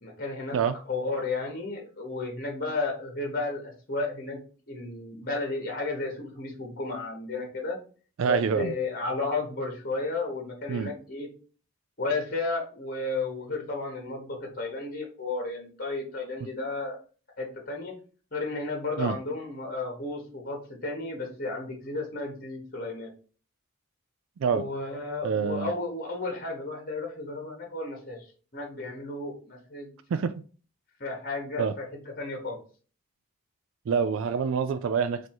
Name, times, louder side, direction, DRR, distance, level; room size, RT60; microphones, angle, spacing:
voice 1, 0.0-0.6 0.9-4.4 4.7-7.8 8.3-11.3 12.0-17.0 17.4-17.9 18.3-23.1 24.5-28.3 28.5-29.9 31.0-32.6, left 3 dB, 45° left, 1.2 m, -33 dB
voice 2, 8.2-8.7 10.7-10.9 19.0-19.2 24.4-24.7 25.2-25.7 30.1-30.4 31.6-31.7 33.9-35.3, right 6 dB, 75° right, 0.3 m, -26 dB
4.4 x 2.7 x 4.5 m
head